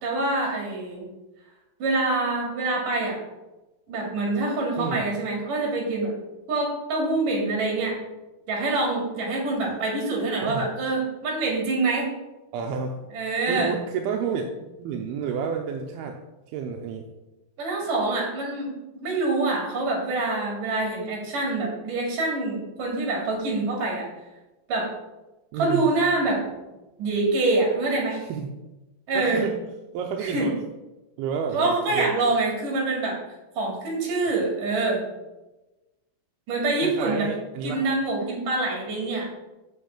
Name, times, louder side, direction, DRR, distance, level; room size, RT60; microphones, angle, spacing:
voice 1, 0.0-1.1 1.8-3.2 3.9-6.1 6.5-8.0 8.5-12.1 13.1-13.7 17.6-24.1 24.7-24.9 25.6-26.4 27.0-28.2 29.1-29.5 30.2-30.5 31.5-33.2 33.6-35.0 36.5-37.3 37.6-39.3, right 2 dB, 55° right, -1 dB, 3.9 m, -25 dB
voice 2, 12.5-13.0 13.5-14.4 14.8-16.2 16.5-17.1 25.5-25.9 28.3-28.5 29.1-29.6 29.9-30.5 31.2-32.2 36.8-37.8, right 6 dB, 80° right, 3 dB, 2.5 m, -30 dB
6.9 x 5.4 x 7.3 m, 1.0 s
omnidirectional pair, 4.6 m